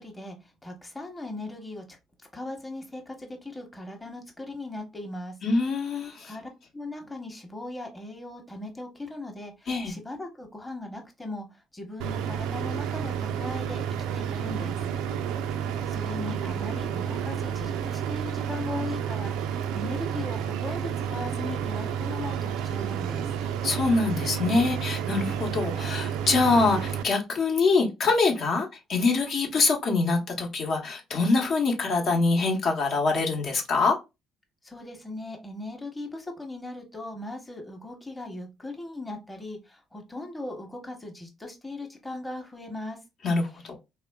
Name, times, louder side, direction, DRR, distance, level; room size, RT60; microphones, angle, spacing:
voice 1, 0.0-2.0 2.3-5.4 6.2-13.8 14.1-14.8 15.9-23.3 34.6-43.0, left 2 dB, 15° left, 0.8 m, -38 dB
voice 2, 5.4-6.3 9.7-9.9 23.6-34.0 43.2-43.7, left 3 dB, 60° left, 0.8 m, -24 dB
sound 1, 12.0-27.0, right 8 dB, 85° right, 0.3 m, -30 dB
3.1 x 2.3 x 2.2 m
supercardioid pair, 75°, 0 cm